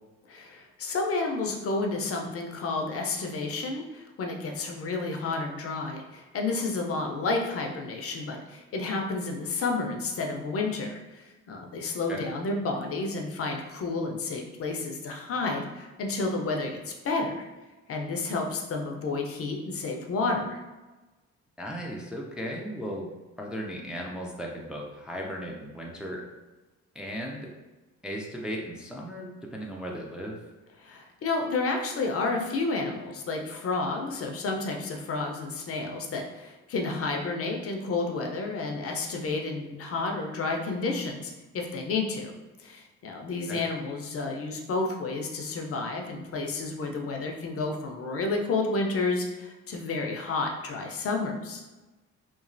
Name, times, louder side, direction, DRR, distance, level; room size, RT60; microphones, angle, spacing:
voice 1, 0.3-17.4 17.9-20.6 30.8-42.3 42.6-51.6, left 3 dB, 50° left, 2 dB, 0.5 m, -31 dB
voice 2, 21.6-23.1 23.4-26.2 27.0-27.5 28.0-30.4 43.5-43.6, equal, 5° right, -2 dB, 0.4 m, -36 dB
3.0 x 2.3 x 2.5 m, 1.1 s
cardioid pair, 90°, 30 cm